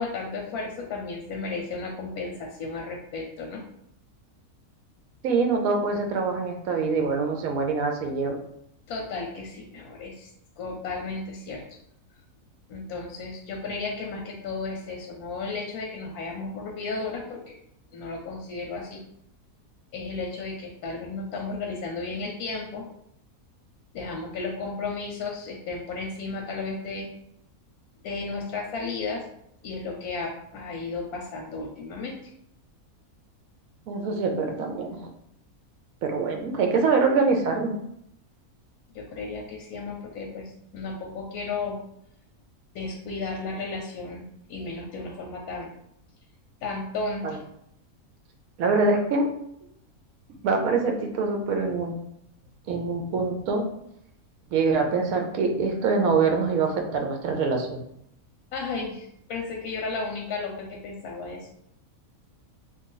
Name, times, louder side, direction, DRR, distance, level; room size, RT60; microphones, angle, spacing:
voice 1, 0.0-3.6 8.9-10.3 10.6-11.6 12.7-17.5 17.9-19.0 19.9-22.9 23.9-27.1 28.0-29.2 29.6-32.2 38.9-41.8 42.7-44.2 44.5-45.7 46.6-47.4 58.5-61.6, left 3 dB, 90° left, 0 dB, 1.1 m, -34 dB
voice 2, 5.2-8.4 33.9-35.1 36.0-37.8 47.2-47.3 48.6-49.3 50.4-52.0 52.7-53.6 54.5-57.8, right 4 dB, 75° right, 3 dB, 1.0 m, -24 dB
2.9 x 2.5 x 3.7 m, 0.74 s
omnidirectional pair, 1.5 m